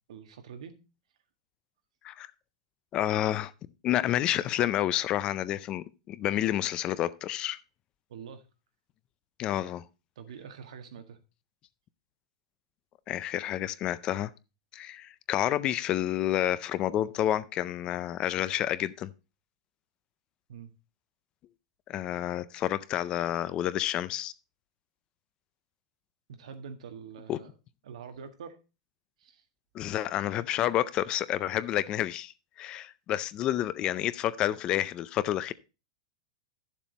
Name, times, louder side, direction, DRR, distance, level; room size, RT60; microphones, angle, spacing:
voice 1, 0.1-0.7 8.1-8.4 10.1-11.2 20.5-20.7 26.3-27.5 27.8-28.6 29.2-29.4, right 6 dB, 80° right, 1.6 m, -45 dB
voice 2, 2.9-3.5 3.8-7.6 9.4-9.8 13.1-14.3 14.7-19.1 21.9-24.3 27.3-27.4 29.7-32.3 32.6-35.5, left 12 dB, 25° left, 0.4 m, -29 dB
11.5 x 7.3 x 4.0 m
supercardioid pair, 160°, 3 cm